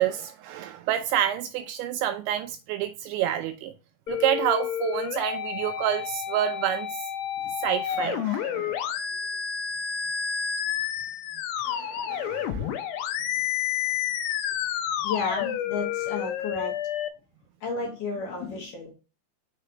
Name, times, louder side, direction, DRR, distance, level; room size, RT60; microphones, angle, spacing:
voice 1, 0.0-3.7 4.1-7.1 7.6-9.0 11.6-12.9, right 11 dB, 85° right, 2.7 m, -28 dB
sound 1, 4.1-17.1, left 9 dB, 85° left, 2.3 m, -30 dB
voice 2, 15.0-16.8 17.6-18.9, left 4 dB, 60° left, 2.3 m, -32 dB
6.5 x 5.0 x 2.9 m
omnidirectional pair, 5.5 m